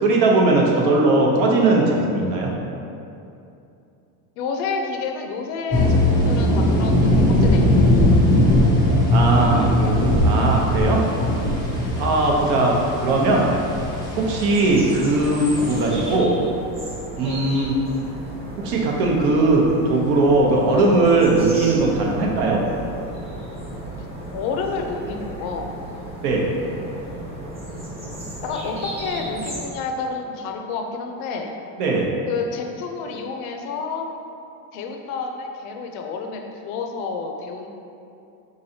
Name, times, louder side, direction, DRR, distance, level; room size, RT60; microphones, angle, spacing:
voice 1, 0.0-2.5 9.1-11.0 12.0-13.5 14.2-16.4 17.2-17.7 18.6-22.6 26.2-26.4 31.8-32.1, right 2 dB, 60° right, -1 dB, 0.8 m, -19 dB
voice 2, 4.4-7.8 11.8-12.0 17.2-17.4 24.3-25.8 28.4-31.6 32.3-34.1 34.7-37.7, left 4 dB, 70° left, 3 dB, 0.6 m, -29 dB
sound 1, 5.7-16.1, left 1 dB, 10° left, 0.5 m, -20 dB
sound 2, 9.8-29.7, right 1 dB, 15° right, 0.8 m, -35 dB
3.7 x 3.1 x 2.7 m, 2.7 s
supercardioid pair, 140°, 45 cm